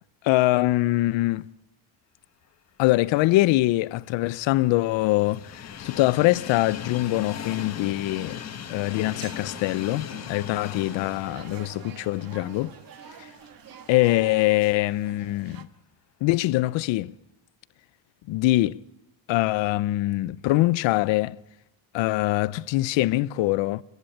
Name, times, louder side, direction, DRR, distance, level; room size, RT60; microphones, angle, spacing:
voice 1, 0.2-1.5 2.8-8.4 8.7-12.7 13.9-15.7 16.2-17.1 18.3-18.8 19.3-21.4 21.9-23.8, left 18 dB, 75° left, 0.7 m, -23 dB
Train, 3.4-13.6 14.0-14.1 15.2-15.3, left 8 dB, 35° left, 1.7 m, -39 dB
sound 1, 9.0-15.6, right 8 dB, 50° right, 1.3 m, -47 dB
29.0 x 11.0 x 8.6 m
cardioid pair, 150°, 46 cm